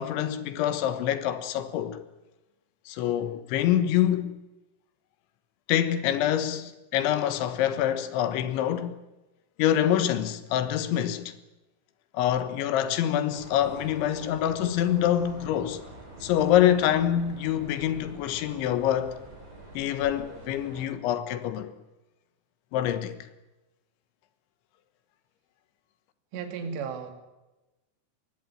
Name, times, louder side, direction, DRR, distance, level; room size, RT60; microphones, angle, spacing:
voice 1, 0.0-2.0 2.9-4.3 5.7-9.0 9.6-11.3 12.1-15.8 16.2-19.2 19.8-21.7 22.7-23.2, left 11 dB, 80° left, 3.6 m, -26 dB
sound 1, 13.3-20.9, right 2 dB, 30° right, 7.2 m, -46 dB
voice 2, 26.3-27.1, right 6 dB, 70° right, 4.4 m, -34 dB
22.0 x 18.0 x 8.9 m
omnidirectional pair, 5.4 m